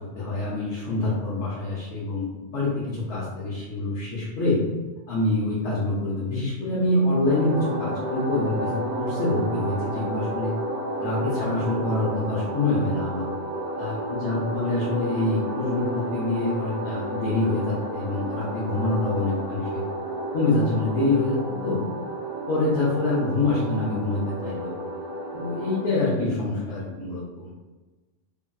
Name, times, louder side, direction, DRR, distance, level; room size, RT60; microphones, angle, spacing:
voice 1, 0.1-4.6 5.1-10.5 11.0-13.3 13.8-19.8 20.3-21.8 22.5-24.8 25.3-27.5, left 2 dB, 80° left, -7 dB, 1.0 m, -26 dB
sound 1, 7.3-25.8, right 1 dB, 85° right, 1.0 m, -32 dB
2.9 x 2.6 x 2.2 m, 1.2 s
omnidirectional pair, 1.1 m